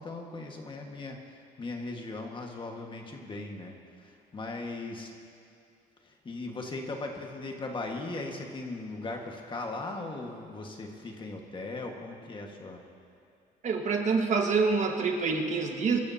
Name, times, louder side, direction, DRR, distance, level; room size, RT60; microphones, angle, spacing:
voice 1, 0.0-5.1 6.0-12.8, left 2 dB, 30° left, 2 dB, 1.6 m, -38 dB
voice 2, 13.6-16.0, right 4 dB, 45° right, 3 dB, 1.6 m, -26 dB
25.0 x 13.5 x 2.8 m, 2.5 s
cardioid pair, 110°, 17 cm